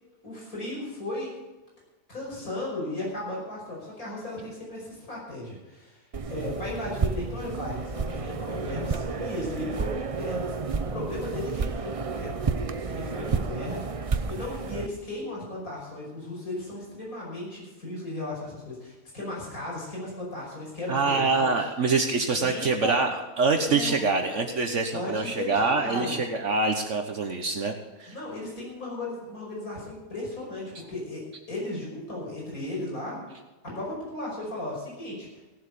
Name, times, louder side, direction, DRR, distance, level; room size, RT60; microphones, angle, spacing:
voice 1, 0.2-1.3 2.1-6.0 6.3-10.4 10.9-12.4 12.9-21.6 22.3-23.0 23.7-24.4 24.9-26.2 28.1-31.2 31.5-33.2 33.7-35.3, left 2 dB, 85° left, -4 dB, 5.9 m, -35 dB
sound 1, 6.1-14.9, right 4 dB, 35° right, 0.5 m, -31 dB
voice 2, 20.9-27.7 28.0-28.1, right 4 dB, 60° right, 5 dB, 1.4 m, -25 dB
17.0 x 7.8 x 6.8 m, 1.2 s
omnidirectional pair, 1.5 m